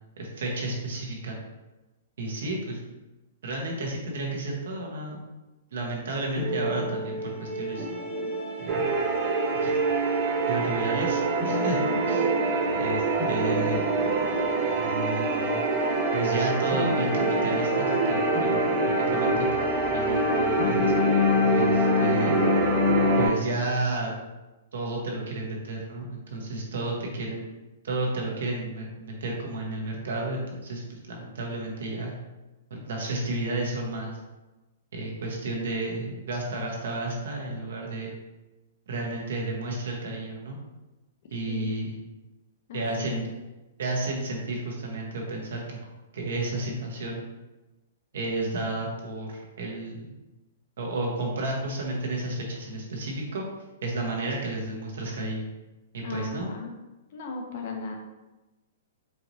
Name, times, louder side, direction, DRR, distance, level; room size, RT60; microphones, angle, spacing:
voice 1, 0.2-1.4 2.2-2.8 3.4-5.2 5.7-7.9 8.6-8.9 9.5-9.8 10.5-11.8 12.1-12.3 12.7-13.8 14.8-15.6 16.1-20.9 21.5-22.4 23.2-24.1 24.7-27.5 27.8-32.1 32.7-34.2 34.9-38.1 38.9-40.6 41.3-42.0 42.7-43.3 43.8-45.8 46.1-47.2 48.1-50.1 50.8-53.4 53.8-55.5 55.9-56.5, right 2 dB, 70° right, -1 dB, 1.1 m, -32 dB
sound 1, 6.4-23.3, left 2 dB, 5° left, 0.9 m, -28 dB
sound 2, 8.7-23.3, right 4 dB, 30° right, 0.4 m, -26 dB
voice 2, 41.5-41.8 42.7-43.3 56.0-56.7 57.1-58.0, left 4 dB, 40° left, 2 dB, 0.6 m, -36 dB
4.6 x 3.0 x 2.7 m, 1.1 s
hypercardioid pair, 175°, 0 cm